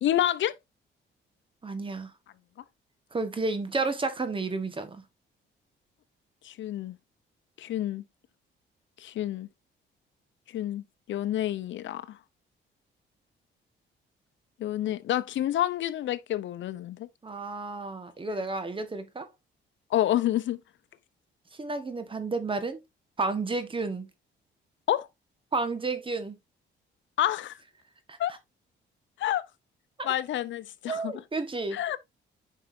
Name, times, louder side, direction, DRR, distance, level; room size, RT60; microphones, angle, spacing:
voice 1, 0.0-0.5 6.4-7.0 7.6-8.0 9.0-9.5 10.5-10.8 11.1-12.2 14.6-17.1 18.3-18.4 19.9-20.6 24.9-25.1 27.2-27.6 28.2-28.3 29.2-29.4 30.0-31.1 31.7-32.0, left 12 dB, 70° left, 0.8 m, -28 dB
voice 2, 1.6-2.1 3.1-5.0 17.2-19.3 21.6-22.8 23.2-24.1 25.5-26.4 28.1-28.2 30.0-30.1 30.9-32.0, right 3 dB, 25° right, 1.6 m, -31 dB
9.2 x 5.5 x 2.8 m
cardioid pair, 90°, 20 cm